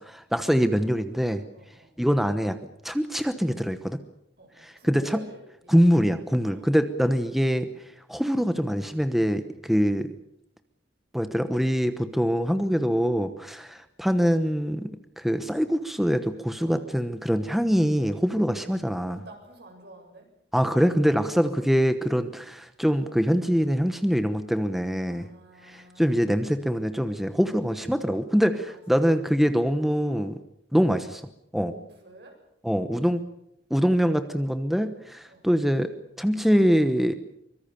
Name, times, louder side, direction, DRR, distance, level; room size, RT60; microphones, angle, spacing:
voice 1, 0.1-1.4 2.0-2.6 2.8-4.0 4.6-5.2 5.7-7.7 8.1-10.1 11.1-14.9 15.2-19.2 20.5-25.3 25.6-30.4 30.7-31.2 31.5-31.7 32.6-33.2 33.7-35.9 36.2-37.3, equal, ahead, 9 dB, 1.0 m, -24 dB
voice 2, 1.5-1.9 4.4-5.8 6.4-6.7 16.6-16.9 19.1-20.3 21.2-21.4 25.0-26.3 28.7-29.1 31.6-32.4 35.3-35.4, right 1 dB, 65° right, 3 dB, 7.7 m, -49 dB
24.5 x 23.0 x 7.0 m, 0.77 s
head